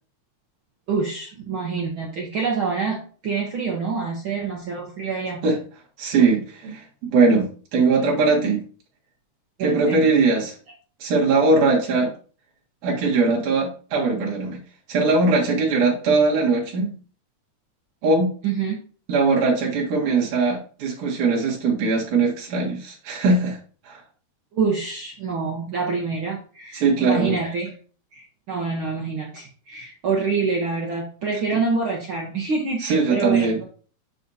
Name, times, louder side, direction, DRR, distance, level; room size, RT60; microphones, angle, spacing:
voice 1, 0.9-5.4 9.6-10.0 18.4-18.7 24.5-27.7 28.1-33.7, right 4 dB, 60° right, -1 dB, 1.5 m, -26 dB
voice 2, 6.0-8.6 9.6-10.5 11.0-12.1 12.8-14.6 14.9-16.9 18.0-18.3 19.1-23.6 23.8-24.0 26.7-27.4 32.8-33.6, right 3 dB, 80° right, -3 dB, 3.1 m, -20 dB
6.6 x 6.5 x 2.7 m, 0.41 s
omnidirectional pair, 3.4 m